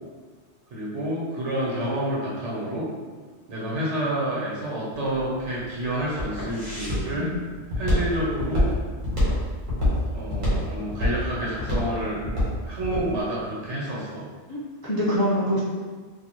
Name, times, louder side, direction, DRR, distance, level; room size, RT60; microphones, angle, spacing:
voice 1, 0.7-2.9 3.5-7.3 7.8-8.7 10.1-12.2 12.6-14.2, right 1 dB, 85° right, -6 dB, 1.2 m, -29 dB
Walk footsteps, 4.9-13.1, left 1 dB, 45° right, 1.4 m, -26 dB
voice 2, 14.5-15.6, equal, 30° left, -8 dB, 0.4 m, -25 dB
4.1 x 2.6 x 3.0 m, 1.5 s
omnidirectional pair, 1.1 m